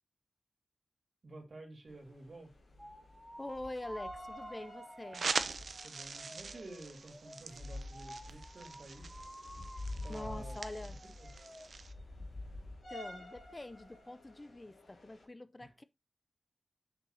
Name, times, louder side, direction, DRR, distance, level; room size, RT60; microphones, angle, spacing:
voice 1, 1.2-2.5 5.8-9.1 10.0-10.6 11.2-11.3 15.6-15.7, right 2 dB, 65° right, 3.0 m, -51 dB
sound 1, 1.9-15.2, left 1 dB, 90° left, 3.0 m, -49 dB
sound 2, 2.8-11.7, equal, ahead, 1.8 m, -52 dB
voice 2, 3.4-5.3 10.1-11.0 12.9-15.8, left 2 dB, 25° left, 0.5 m, -45 dB
sound 3, 5.1-11.9, right 4 dB, 85° right, 0.6 m, -42 dB
7.9 x 6.1 x 2.8 m
wide cardioid pair, 95°, 0 cm